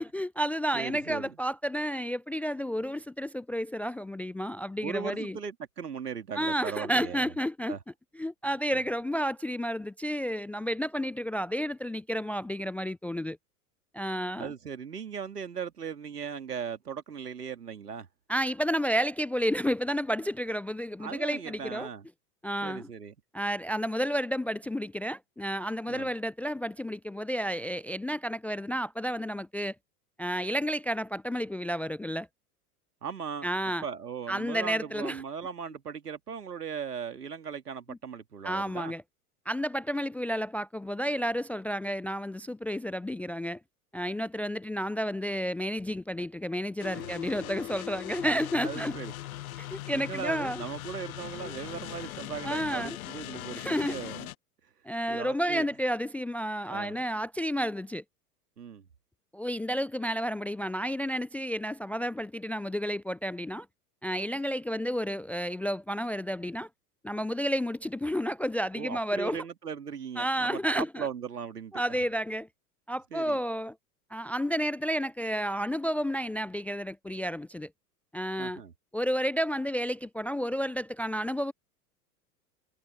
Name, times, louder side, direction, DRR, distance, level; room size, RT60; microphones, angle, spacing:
voice 1, 0.0-5.4 6.4-7.8 8.2-13.4 13.9-14.5 18.3-21.9 22.4-22.9 23.3-29.7 30.2-32.3 33.4-33.8 34.3-35.2 37.9-38.0 38.4-39.0 39.5-43.6 43.9-48.9 49.6-50.6 51.4-51.5 52.4-53.0 53.6-54.0 54.9-58.0 59.3-63.7 64.0-66.7 67.0-69.4 70.2-71.1 71.7-72.5 72.9-73.8 74.1-77.7 78.1-78.6 78.9-81.5, equal, 5° left, 0.4 m, -31 dB
voice 2, 0.7-1.4 4.8-7.3 7.7-7.8 8.7-8.8 14.4-18.1 21.0-22.1 22.6-23.1 25.9-26.1 33.0-33.5 33.8-38.9 46.9-47.6 48.6-49.1 49.9-54.3 55.1-55.7 56.7-57.0 58.6-58.8 68.8-72.0 73.1-73.4 78.4-78.7, right 6 dB, 80° right, 2.4 m, -38 dB
sound 1, 46.8-54.3, left 14 dB, 60° left, 1.1 m, -40 dB
figure-of-eight pair, 85°, 46 cm